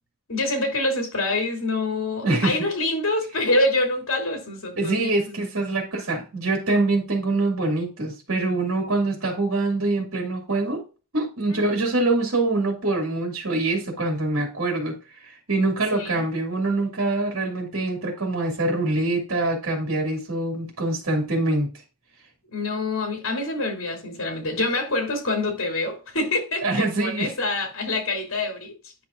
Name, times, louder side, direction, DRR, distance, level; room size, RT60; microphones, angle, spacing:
voice 1, 0.3-5.3 11.5-11.8 15.9-16.2 22.5-28.7, left 2 dB, 75° left, 2.7 m, -26 dB
voice 2, 2.2-2.6 4.8-10.8 11.1-21.7 26.6-27.3, right 2 dB, 75° right, 2.3 m, -24 dB
9.9 x 6.0 x 2.4 m
head